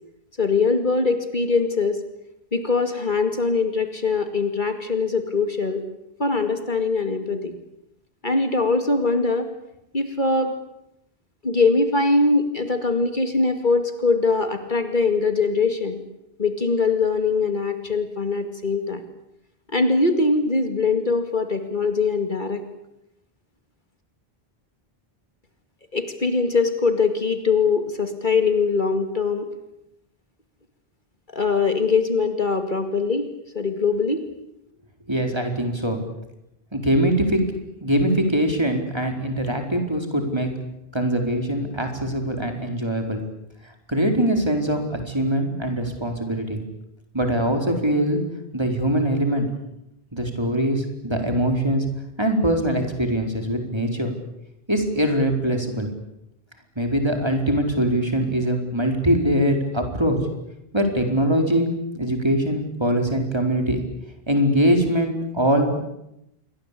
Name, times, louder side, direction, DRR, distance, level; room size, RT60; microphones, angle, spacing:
voice 1, 0.4-2.0 2.5-5.8 6.2-7.6 8.2-9.5 9.9-10.5 11.4-16.0 16.4-19.0 19.7-22.6 25.9-29.5 31.3-33.3 33.5-34.2, left 4 dB, 50° left, 8 dB, 2.5 m, -22 dB
voice 2, 35.1-36.0 36.7-37.4 37.8-40.5 40.9-43.2 43.6-46.6 47.1-48.2 48.5-49.5 50.1-51.8 52.2-54.1 54.7-55.9 56.8-60.2 60.7-61.7 61.9-63.8 64.3-65.8, right 1 dB, 25° right, 4 dB, 4.5 m, -22 dB
28.5 x 23.5 x 8.5 m, 0.84 s
omnidirectional pair, 1.0 m